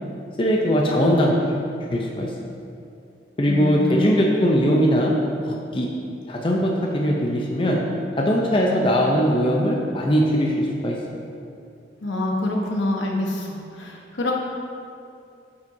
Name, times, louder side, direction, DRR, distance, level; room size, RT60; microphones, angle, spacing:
voice 1, 0.4-1.6 1.9-2.3 3.4-5.1 5.5-5.9 6.3-7.8 8.2-11.0, equal, 30° left, -1 dB, 0.5 m, -20 dB
voice 2, 3.5-4.3 12.0-14.3, left 1 dB, 85° left, -1 dB, 1.0 m, -26 dB
8.8 x 5.7 x 2.7 m, 2.5 s
head